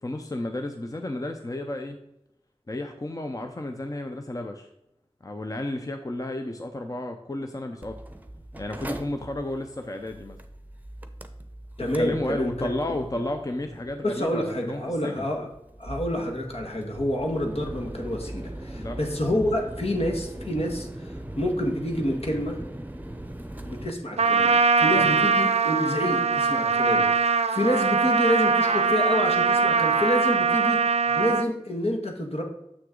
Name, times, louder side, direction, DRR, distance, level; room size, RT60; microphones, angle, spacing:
voice 1, 0.0-2.0 2.7-4.7 5.2-8.0 8.6-10.4 11.8-15.3 18.8-19.0 25.0-25.1, left 1 dB, 35° left, 5 dB, 0.6 m, -32 dB
Mechanical fan, 7.8-23.9, right 1 dB, 15° right, 0.7 m, -40 dB
voice 2, 11.8-12.5 14.0-15.5 15.8-22.6 23.7-30.8 31.1-32.4, left 1 dB, 70° left, 1 dB, 1.5 m, -28 dB
Trumpet, 24.2-31.5, right 5 dB, 80° right, 0.4 m, -22 dB
7.0 x 6.3 x 3.8 m, 0.84 s
wide cardioid pair, 45°, 11 cm